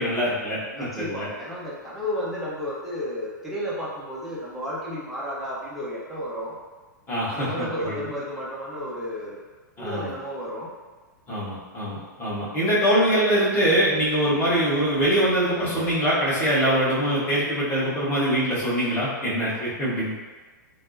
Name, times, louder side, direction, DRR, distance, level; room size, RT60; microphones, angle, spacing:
voice 1, 0.0-1.2 7.1-7.5 7.9-8.0 9.8-10.1 11.3-20.1, equal, 20° left, -9 dB, 1.3 m, -23 dB
voice 2, 0.7-6.5 7.3-9.4 9.8-10.7 12.9-13.3, equal, ahead, -8 dB, 0.7 m, -32 dB
3.4 x 2.2 x 2.6 m, 1.3 s
hypercardioid pair, 110°, 10 cm